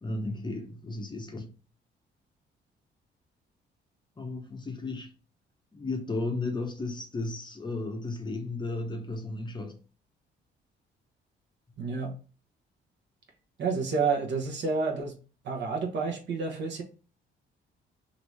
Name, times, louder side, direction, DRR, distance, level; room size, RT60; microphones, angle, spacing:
voice 1, 0.0-1.5 4.2-5.1 5.7-9.8, left 2 dB, 25° left, 0.6 m, -34 dB
voice 2, 11.8-12.1 13.6-15.1 15.4-16.8, right 4 dB, 65° right, 0.9 m, -29 dB
2.9 x 2.6 x 3.2 m
cardioid pair, 90°, 20 cm